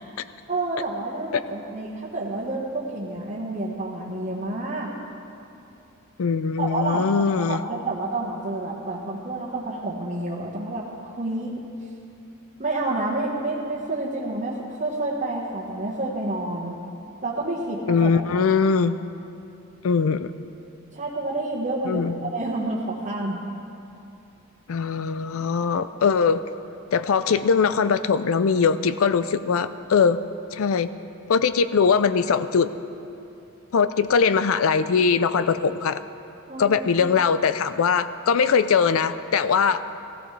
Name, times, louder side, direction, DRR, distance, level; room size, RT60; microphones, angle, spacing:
voice 1, 0.5-5.0 6.6-11.5 12.6-16.8 17.2-18.4 20.9-23.4 36.5-36.9, right 2 dB, 35° right, -6 dB, 1.3 m, -29 dB
voice 2, 6.2-7.6 17.9-19.0 19.8-20.3 21.8-22.3 24.7-26.4 26.9-30.2 30.5-30.9 31.3-32.7 33.7-36.0 36.6-39.8, left 5 dB, 70° left, 13 dB, 0.4 m, -21 dB
16.5 x 16.0 x 3.3 m, 2.7 s
head